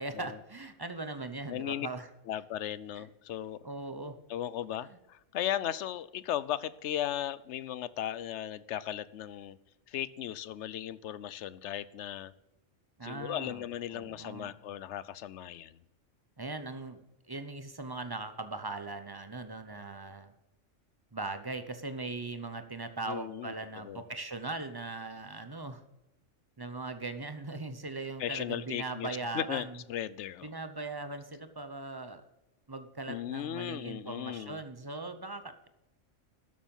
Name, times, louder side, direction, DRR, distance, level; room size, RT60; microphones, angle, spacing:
voice 1, 0.0-2.1 3.0-3.1 3.6-4.2 4.9-5.0 13.0-13.6 13.9-14.5 16.4-17.0 17.3-20.3 21.1-25.8 26.6-29.8 30.4-32.2 32.7-35.7, right 3 dB, 20° right, 9 dB, 0.7 m, -39 dB
voice 2, 1.5-1.9 2.3-3.6 4.3-9.6 9.9-12.3 13.0-15.8 23.1-24.0 28.2-30.5 33.1-34.6, left 11 dB, 70° left, 18 dB, 0.8 m, -37 dB
12.5 x 7.3 x 5.5 m, 0.96 s
omnidirectional pair, 1.3 m